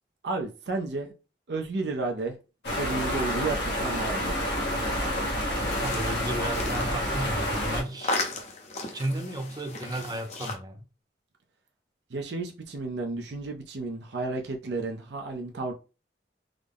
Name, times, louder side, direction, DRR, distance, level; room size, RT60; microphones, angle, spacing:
voice 1, 0.2-1.1 1.5-2.4 2.8-4.3 12.1-15.7, right 3 dB, 75° right, 0.6 m, -32 dB
sound 1, 2.6-7.8, equal, 75° left, 1.2 m, -28 dB
sound 2, 5.5-10.6, left 3 dB, 40° left, 0.6 m, -36 dB
voice 2, 5.8-8.3 8.9-10.8, right 1 dB, 20° right, 0.5 m, -34 dB
3.7 x 2.1 x 3.4 m
head